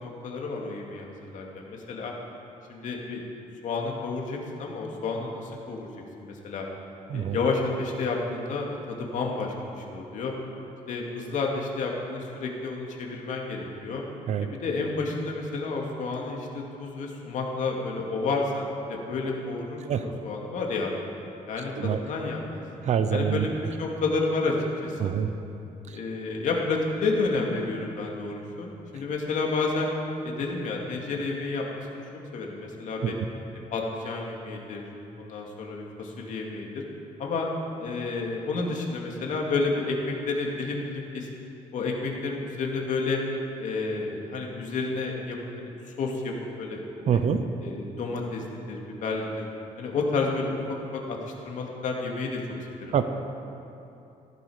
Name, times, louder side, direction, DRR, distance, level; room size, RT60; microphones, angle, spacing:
voice 1, 0.0-2.1 2.7-3.2 3.6-5.9 6.2-6.7 7.1-10.3 10.9-14.0 14.4-20.9 21.5-22.6 23.1-24.6 24.8-25.1 25.9-29.9 30.2-31.6 31.9-32.0 32.3-33.2 33.7-34.8 35.2-36.8 37.2-37.5 37.8-41.3 41.7-43.2 43.6-45.7 46.0-46.3 46.6-47.2 47.6-49.5 49.8-50.6 50.9-51.2 51.4-52.4 52.8-53.0, left 3 dB, 65° left, 0 dB, 2.2 m, -30 dB
voice 2, 22.8-23.5 25.0-25.3 33.0-33.1 47.1-47.4 52.9-53.0, right 8 dB, 55° right, 9 dB, 0.8 m, -25 dB
15.0 x 11.5 x 5.0 m, 2.8 s
cardioid pair, 140°, 14 cm